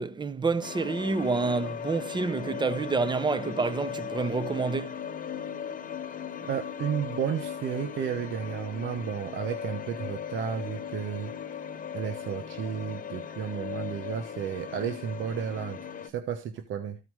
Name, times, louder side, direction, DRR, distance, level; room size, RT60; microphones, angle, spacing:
voice 1, 0.0-5.0, right 4 dB, 25° right, 0.8 m, -28 dB
sound 1, 0.6-16.1, left 8 dB, 40° left, 1.2 m, -38 dB
voice 2, 6.5-11.3 11.9-17.0, right 8 dB, 80° right, 1.1 m, -33 dB
14.0 x 5.0 x 4.7 m
cardioid pair, 90°, 20 cm